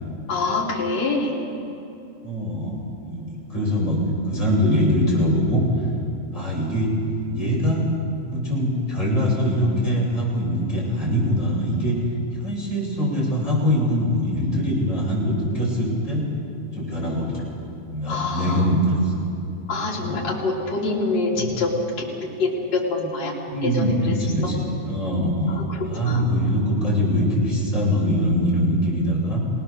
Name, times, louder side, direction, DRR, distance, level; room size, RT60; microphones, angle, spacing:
voice 1, 0.3-1.3 18.1-18.7 19.7-23.4 23.6-24.2 25.7-26.2, left 3 dB, 60° left, -3 dB, 4.3 m, -25 dB
voice 2, 2.2-2.7 3.0-3.2 3.5-5.6 6.3-6.9 7.3-7.9 8.3-12.0 12.4-16.3 16.7-17.4 17.9-19.1 20.0-20.2 21.4-21.5 23.5-25.6 25.8-29.4, equal, 25° left, -5 dB, 7.0 m, -22 dB
26.0 x 19.0 x 6.8 m, 2.7 s
omnidirectional pair, 3.5 m